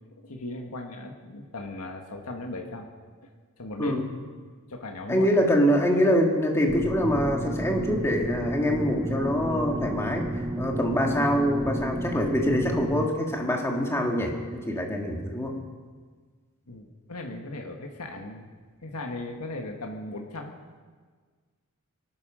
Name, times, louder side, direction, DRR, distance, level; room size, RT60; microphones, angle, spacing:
voice 1, 0.2-2.9 3.2-3.3 3.6-4.0 4.7-5.3 16.7-18.5 18.8-20.5, left 2 dB, 90° left, 2 dB, 1.7 m, -37 dB
voice 2, 5.1-10.2 10.6-15.6, equal, 10° left, 1 dB, 2.0 m, -24 dB
sound 1, 6.7-13.1, right 1 dB, 15° right, 0.5 m, -32 dB
24.0 x 9.6 x 6.3 m, 1.5 s
head